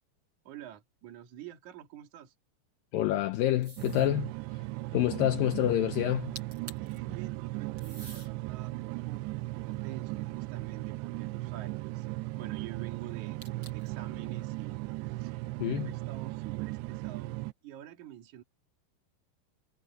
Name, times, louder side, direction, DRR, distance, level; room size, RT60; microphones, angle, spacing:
voice 1, 0.4-2.3 6.7-12.1 12.3-13.4 13.7-18.4, right 11 dB, 50° right, 3.1 m, -48 dB
voice 2, 2.9-4.6 4.9-6.3 15.6-15.9, left 13 dB, 80° left, 2.1 m, -28 dB
sound 1, 3.6-4.1 6.1-6.2 6.3-7.0 7.8-8.3 9.0-10.4 13.4-14.0, right 2 dB, 30° right, 7.8 m, -49 dB
sound 2, 3.8-17.5, right 21 dB, 85° right, 2.6 m, -37 dB
omnidirectional pair, 4.8 m